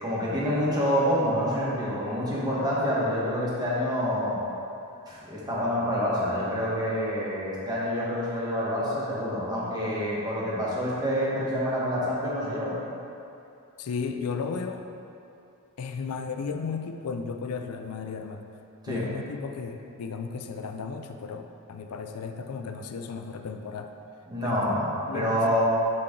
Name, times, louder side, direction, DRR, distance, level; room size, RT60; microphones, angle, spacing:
voice 1, 0.0-4.4 5.1-12.8 18.8-19.0 24.3-25.6, equal, 20° right, -7 dB, 1.3 m, -27 dB
voice 2, 13.8-14.9 15.8-18.4 18.9-23.9 24.4-24.8 25.1-25.4, left 5 dB, 80° left, 5 dB, 0.4 m, -34 dB
7.7 x 4.5 x 3.8 m, 2.7 s
head